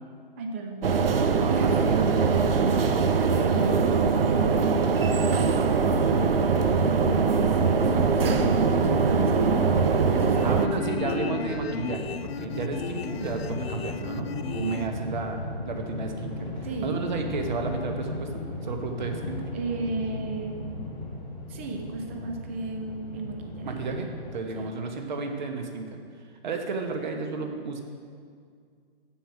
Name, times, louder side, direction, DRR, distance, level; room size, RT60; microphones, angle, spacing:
voice 1, 0.4-1.8 3.3-9.7 10.1-11.3 14.6-14.9 16.6-16.9 19.5-20.7 21.5-23.7 24.5-24.7, right 3 dB, 15° right, 3 dB, 0.4 m, -36 dB
sound 1, 0.8-10.7, right 5 dB, 70° right, 0.7 m, -22 dB
voice 2, 1.4-3.0 10.4-15.4 15.7-19.4 23.6-26.0 26.4-27.8, right 4 dB, 50° right, 4 dB, 1.1 m, -33 dB
sound 2, 4.5-14.9, left 7 dB, 80° left, 0.5 m, -36 dB
sound 3, 5.6-24.3, left 2 dB, 15° left, 1.0 m, -37 dB
7.4 x 7.0 x 5.9 m, 2.1 s
figure-of-eight pair, 135°, 30 cm